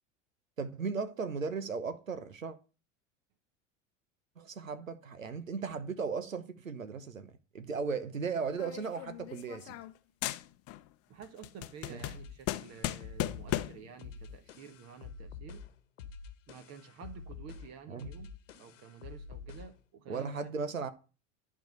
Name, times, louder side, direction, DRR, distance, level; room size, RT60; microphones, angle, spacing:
voice 1, 0.6-2.5 4.4-9.8 11.9-12.0 17.9-18.1 20.1-20.9, right 5 dB, 80° right, 1.0 m, -36 dB
sound 1, 8.6-10.0 10.2-10.9 11.2-13.9, left 15 dB, 40° left, 0.8 m, -37 dB
voice 2, 11.1-15.6 16.5-18.3 18.6-20.5, right 7 dB, 40° right, 1.5 m, -50 dB
sound 2, 12.0-19.8, left 5 dB, 65° left, 1.3 m, -48 dB
11.5 x 4.8 x 8.0 m
figure-of-eight pair, 75°, 39 cm